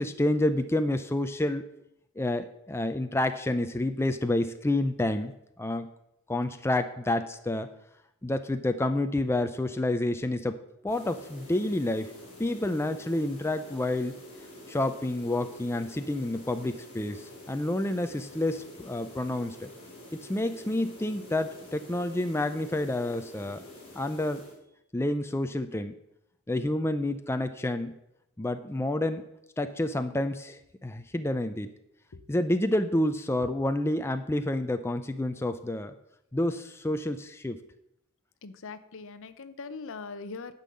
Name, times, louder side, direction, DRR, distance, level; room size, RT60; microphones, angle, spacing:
voice 1, 0.0-1.7 2.2-5.9 6.3-7.7 8.2-10.6 10.8-12.1 12.4-14.1 14.7-19.7 20.2-23.6 24.0-24.4 24.9-26.0 26.5-27.9 28.4-29.2 29.6-31.7 32.3-35.9 36.3-37.6, left 1 dB, 10° left, 8 dB, 0.5 m, -29 dB
sound 1, 10.9-24.6, left 1 dB, 25° left, 3.4 m, -48 dB
voice 2, 38.4-40.5, left 4 dB, 60° left, 13 dB, 0.7 m, -41 dB
10.5 x 5.5 x 7.6 m, 0.80 s
head